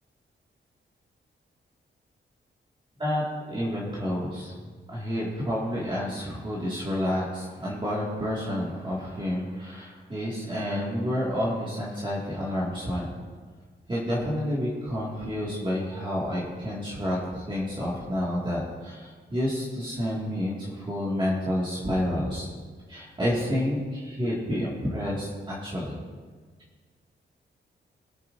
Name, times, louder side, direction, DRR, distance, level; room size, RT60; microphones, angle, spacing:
voice 1, 3.5-13.1 13.9-22.5 22.9-26.0, equal, 25° right, -6 dB, 2.0 m, -29 dB
21.5 x 7.4 x 2.6 m, 1.5 s
wide cardioid pair, 150°, 20 cm